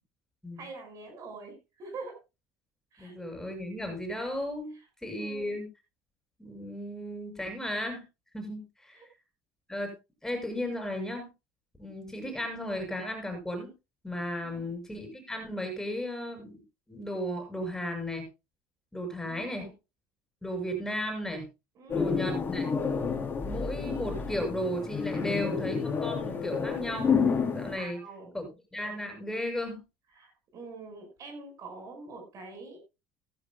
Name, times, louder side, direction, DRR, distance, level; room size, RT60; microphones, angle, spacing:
voice 1, 0.6-2.2 2.9-3.1 4.7-4.8 5.2-5.6 8.9-9.1 14.4-14.7 19.3-19.7 21.8-22.1 27.6-28.3 30.1-32.8, right 3 dB, 45° right, 6 dB, 5.6 m, -45 dB
voice 2, 3.0-4.8 5.0-5.7 6.4-8.0 8.3-9.0 9.7-9.9 10.2-11.3 11.8-13.7 14.0-16.6 16.9-18.3 18.9-19.7 20.4-21.5 21.9-22.7 23.4-27.2 27.5-28.0 28.3-28.4 28.7-29.8, equal, 5° left, 4 dB, 6.8 m, -35 dB
sound 1, 21.9-27.8, left 5 dB, 25° left, 3.3 m, -30 dB
16.5 x 14.0 x 2.3 m, 0.27 s
supercardioid pair, 105°, 8 cm